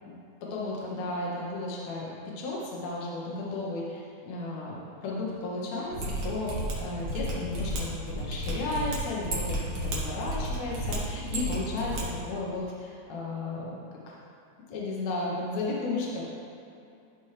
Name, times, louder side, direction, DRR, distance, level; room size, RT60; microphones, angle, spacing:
voice 1, 0.4-13.8 14.1-14.2 14.7-16.2, left 2 dB, 70° left, -4 dB, 2.2 m, -34 dB
Mechanisms, 5.9-12.0 12.3-12.4, equal, 55° right, 2.0 m, -33 dB
13.0 x 4.5 x 3.2 m, 2.7 s
omnidirectional pair, 3.4 m